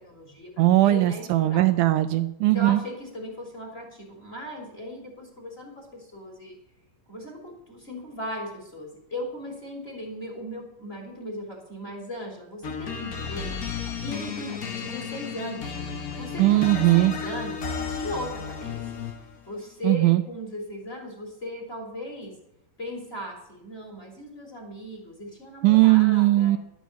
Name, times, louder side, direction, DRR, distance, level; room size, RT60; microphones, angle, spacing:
voice 1, 0.0-1.7 2.4-6.5 7.1-15.7 16.1-19.0 19.5-22.3 22.8-26.5, equal, 20° left, 0 dB, 3.0 m, -38 dB
voice 2, 0.6-2.8 16.4-17.1 19.8-20.2 25.6-26.6, right 17 dB, 80° right, 10 dB, 2.0 m, -19 dB
sound 1, 12.6-19.3, left 6 dB, 70° left, 0.8 m, -33 dB
12.5 x 6.2 x 8.2 m, 0.86 s
omnidirectional pair, 3.8 m